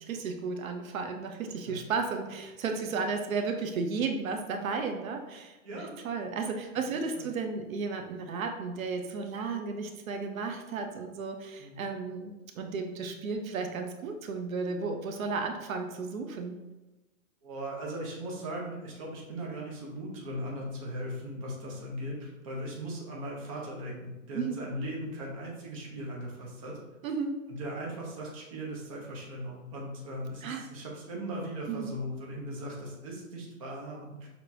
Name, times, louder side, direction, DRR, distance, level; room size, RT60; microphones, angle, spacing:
voice 1, 0.0-16.6 24.3-24.6 27.0-27.4 30.4-30.6 31.7-31.9, right 4 dB, 75° right, 4 dB, 0.8 m, -34 dB
voice 2, 6.9-7.3 11.6-11.8 17.4-26.8 27.6-34.3, equal, 25° right, -3 dB, 0.8 m, -38 dB
6.0 x 2.8 x 2.7 m, 1.1 s
hypercardioid pair, 175°, 42 cm